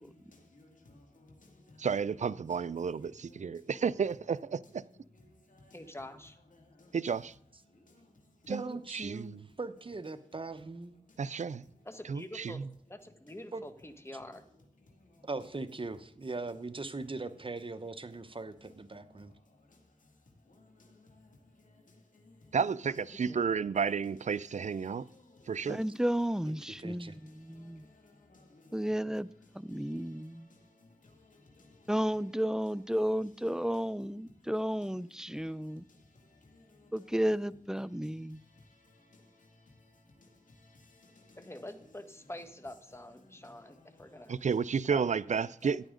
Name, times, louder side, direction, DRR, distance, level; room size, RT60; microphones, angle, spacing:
voice 1, 0.0-1.9 2.2-2.6 2.9-3.7 4.6-5.9 6.5-7.1 7.6-8.5 9.2-9.6 11.1-11.9 14.8-15.3 16.4-16.8 18.2-22.6 23.2-23.5 24.4-26.0 26.6-32.3 32.6-32.8 33.2-37.3 37.8-41.6 42.9-44.5 44.7-44.8, left 2 dB, 75° left, 2.2 m, -61 dB
voice 2, 1.8-4.8 6.9-7.3 8.5-8.6 8.9-9.4 11.2-11.6 12.1-12.7 22.5-25.1 25.5-25.8 44.3-45.9, right 6 dB, 65° right, 0.4 m, -32 dB
voice 3, 5.7-6.4 11.9-12.6 12.9-14.4 22.6-22.7 23.1-23.4 41.4-44.4 44.8-45.8, left 1 dB, 20° left, 1.6 m, -46 dB
voice 4, 8.5-11.0 13.5-13.7 15.2-19.3 26.8-27.1, right 3 dB, 40° right, 0.9 m, -40 dB
voice 5, 25.7-27.9 28.7-29.3 29.5-30.5 31.9-35.8 36.9-38.4, equal, 5° right, 0.4 m, -33 dB
14.0 x 9.9 x 3.8 m
wide cardioid pair, 50°, 14 cm